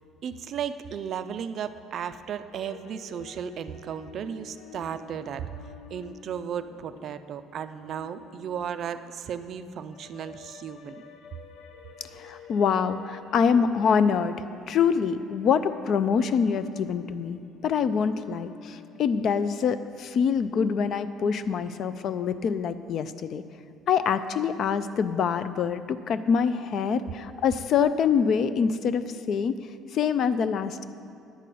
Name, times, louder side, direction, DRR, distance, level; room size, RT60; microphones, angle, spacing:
voice 1, 0.2-5.5 5.9-11.0, right 8 dB, 40° right, 11 dB, 0.3 m, -35 dB
sound 1, 2.5-19.5, left 5 dB, 90° left, 0.7 m, -49 dB
voice 2, 12.2-14.4 14.7-23.4 23.9-29.6 29.9-30.9, left 6 dB, 45° left, 12 dB, 0.3 m, -25 dB
10.0 x 5.3 x 8.3 m, 2.4 s
cardioid pair, 170°, 0 cm